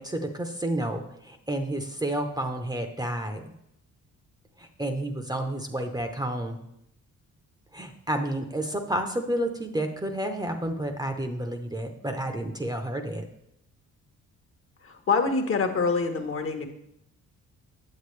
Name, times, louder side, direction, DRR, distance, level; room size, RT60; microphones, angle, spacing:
voice 1, 0.0-3.4 4.6-6.7 7.7-13.2, right 1 dB, 15° right, 5 dB, 0.8 m, -30 dB
voice 2, 14.8-16.7, left 4 dB, 45° left, 6 dB, 1.1 m, -25 dB
8.5 x 7.4 x 3.2 m, 0.78 s
cardioid pair, 90°, 30 cm